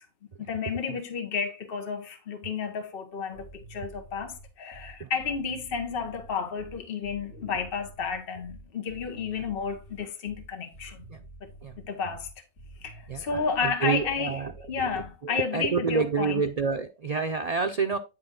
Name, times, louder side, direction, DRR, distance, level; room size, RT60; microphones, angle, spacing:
voice 1, 0.4-11.1 11.4-11.5 11.8-12.3 12.8-14.4 14.7-16.4, left 6 dB, 45° left, 1.3 m, -32 dB
sound 1, 3.3-15.2, right 1 dB, 65° left, 4.4 m, -48 dB
voice 2, 13.1-14.5 15.2-18.0, right 5 dB, 85° right, 0.3 m, -28 dB
10.0 x 4.4 x 3.8 m
omnidirectional pair, 1.5 m